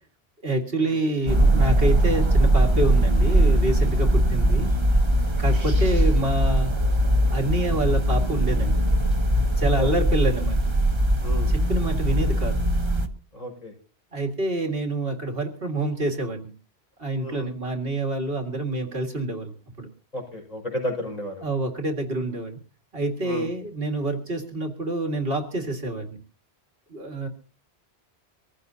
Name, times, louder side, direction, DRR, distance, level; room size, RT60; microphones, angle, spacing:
voice 1, 0.4-4.7 5.4-6.8 7.3-8.9 9.6-10.6 11.5-12.6 14.1-16.4 17.0-19.5 19.8-19.9 21.4-22.6 22.9-26.1 26.9-27.3, right 2 dB, 60° right, 3 dB, 2.2 m, -27 dB
sound 1, 1.3-13.1, right 1 dB, 25° right, 1.1 m, -21 dB
voice 2, 11.2-11.7 13.3-13.7 17.2-17.5 20.1-21.5 23.2-23.5, left 1 dB, 40° left, 0 dB, 6.0 m, -32 dB
24.0 x 14.5 x 2.8 m, 0.37 s
omnidirectional pair, 1.1 m